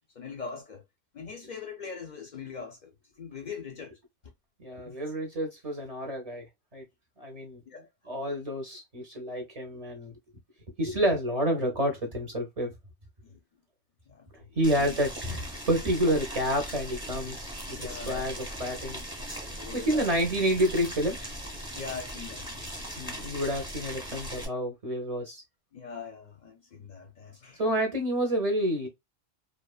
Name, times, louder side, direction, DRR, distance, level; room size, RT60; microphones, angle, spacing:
voice 1, 0.1-0.8 1.1-2.9 3.2-4.0 4.9-5.0 7.7-7.9 13.2-13.4 14.1-15.0 17.8-18.4 18.9-19.0 19.4-20.2 21.7-22.6 25.7-27.6, left 5 dB, 55° left, 0.5 m, -42 dB
voice 2, 4.6-6.5 6.7-6.8 7.2-7.6 8.1-10.1 10.8-12.7 14.6-19.0 19.7-21.2 23.0-25.4 27.6-28.9, equal, 40° right, 0.6 m, -29 dB
Boiling, 14.6-24.5, equal, 5° right, 0.7 m, -39 dB
2.8 x 2.2 x 2.2 m
omnidirectional pair, 1.2 m